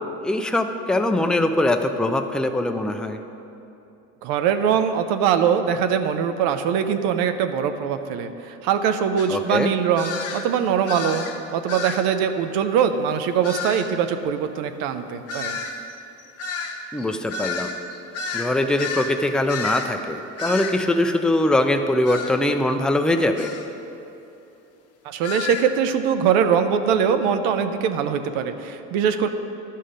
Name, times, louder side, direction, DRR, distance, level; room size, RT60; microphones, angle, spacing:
voice 1, 0.2-3.2 9.3-9.7 16.9-17.7 18.3-23.5, left 1 dB, ahead, 5 dB, 0.5 m, -22 dB
voice 2, 4.2-11.3 11.5-15.6 25.0-29.3, right 7 dB, 75° right, 9 dB, 0.7 m, -22 dB
sound 1, 9.2-9.3 10.0-10.5 10.9-11.4 11.7-12.1 13.4-13.9 15.3-19.1 19.5-19.9 20.4-20.8 22.1-22.3 23.4-23.6 25.2-25.7, left 4 dB, 40° left, 1.0 m, -31 dB
11.0 x 5.6 x 5.1 m, 2.9 s
supercardioid pair, 75°, 36 cm